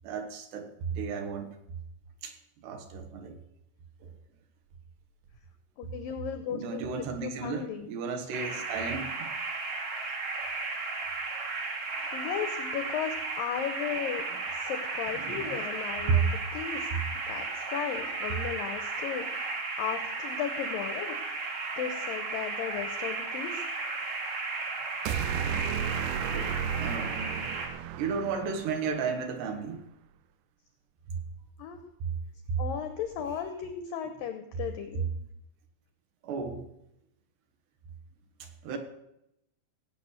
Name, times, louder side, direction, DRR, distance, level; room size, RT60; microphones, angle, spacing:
voice 1, 0.0-1.5 2.2-2.3 2.6-3.4 4.0-4.1 6.5-9.3 11.3-12.1 15.1-16.2 18.0-18.4 26.3-26.5 26.8-27.5 28.0-29.8 31.1-31.2 32.5-32.6 36.2-36.7 38.4-38.8, right 5 dB, 70° right, 5 dB, 3.3 m, -34 dB
voice 2, 5.8-6.8 7.2-7.9 12.1-14.2 14.5-16.9 17.3-19.3 19.8-21.5 21.8-23.7 24.0-24.1 31.6-31.8 32.6-35.1, left 8 dB, 85° left, 7 dB, 2.0 m, -35 dB
sound 1, 8.3-27.7, right 3 dB, 50° right, 1.9 m, -34 dB
sound 2, 25.1-29.3, right 8 dB, 85° right, 2.4 m, -34 dB
17.5 x 8.1 x 6.5 m, 0.82 s
omnidirectional pair, 5.3 m